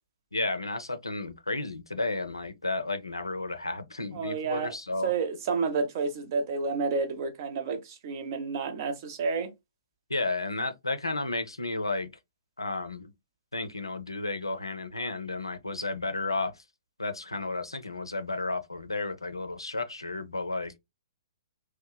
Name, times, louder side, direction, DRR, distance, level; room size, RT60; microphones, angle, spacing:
voice 1, 0.3-5.1 10.1-12.1 12.6-13.1 13.5-16.5 17.0-20.7, left 2 dB, 90° left, 0.4 m, -32 dB
voice 2, 4.1-4.7 5.0-9.5, right 4 dB, 45° right, 0.6 m, -30 dB
2.9 x 2.1 x 2.2 m
figure-of-eight pair, 120°, 2 cm